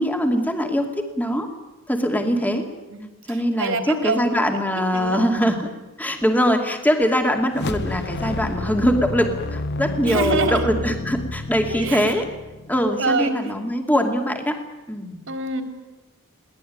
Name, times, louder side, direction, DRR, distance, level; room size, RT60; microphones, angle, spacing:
voice 1, 0.0-1.5 1.9-2.7 3.3-5.7 6.0-12.3 12.7-14.6 14.9-15.2, equal, 10° left, 4 dB, 2.6 m, -22 dB
voice 2, 3.3-4.4 4.9-5.3 10.0-10.6 11.7-12.2 13.0-13.4 15.3-15.6, right 3 dB, 60° right, 5 dB, 3.7 m, -25 dB
sound 1, 7.5-12.9, left 2 dB, 50° left, 0.9 m, -30 dB
22.0 x 18.0 x 9.5 m, 1.1 s
head